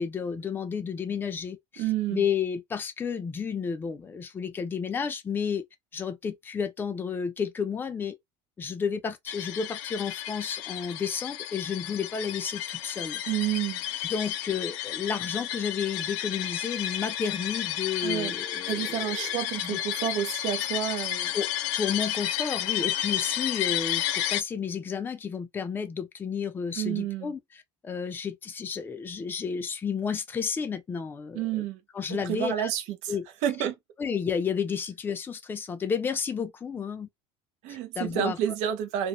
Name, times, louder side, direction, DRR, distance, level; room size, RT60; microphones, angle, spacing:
voice 1, 0.0-1.8 2.1-5.6 5.9-8.1 8.6-13.2 14.1-19.3 19.6-19.8 21.3-27.4 27.8-31.6 31.9-32.7 33.1-33.2 34.0-37.1 38.0-38.4, left 6 dB, 15° left, 0.4 m, -31 dB
voice 2, 1.8-2.2 13.3-13.8 18.0-18.3 18.7-21.3 26.8-27.3 31.3-31.8 32.1-33.2 33.4-33.7 37.6-39.1, right 10 dB, 70° right, 0.5 m, -29 dB
sound 1, 9.3-24.4, left 13 dB, 75° left, 0.4 m, -32 dB
2.3 x 2.1 x 2.9 m
cardioid pair, 150°, 13 cm